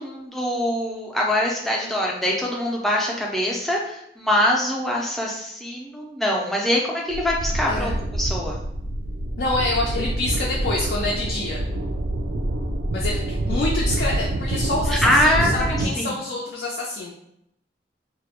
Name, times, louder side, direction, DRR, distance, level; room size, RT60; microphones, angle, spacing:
voice 1, 0.0-8.6 14.9-16.1, left 1 dB, ahead, -3 dB, 0.4 m, -23 dB
sound 1, 7.1-15.9, right 1 dB, 70° right, 0.3 m, -26 dB
voice 2, 7.7-8.0 9.4-11.6 12.9-17.1, left 2 dB, 70° left, -3 dB, 0.4 m, -27 dB
2.2 x 2.0 x 2.8 m, 0.77 s
head